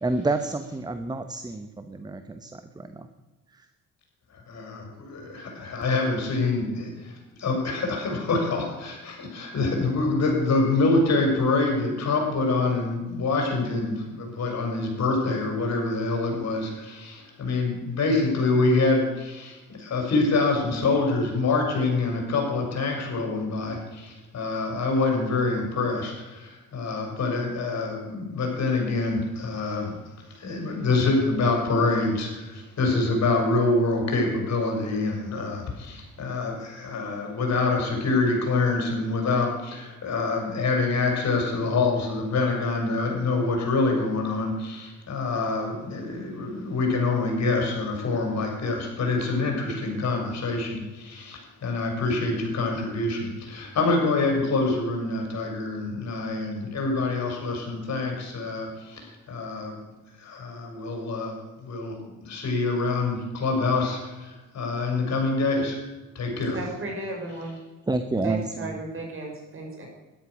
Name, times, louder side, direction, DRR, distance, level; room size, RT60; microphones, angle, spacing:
voice 1, 0.0-3.1 67.9-68.8, right 2 dB, 15° right, 9 dB, 1.0 m, -29 dB
voice 2, 4.3-30.0 30.3-59.8 60.2-61.4 61.6-65.8 66.1-66.6, left 3 dB, 60° left, 1 dB, 6.1 m, -26 dB
voice 3, 66.5-67.6 68.2-69.9, right 2 dB, 45° right, 0 dB, 6.4 m, -35 dB
13.0 x 11.5 x 6.4 m, 1.1 s
cardioid pair, 90°, 30 cm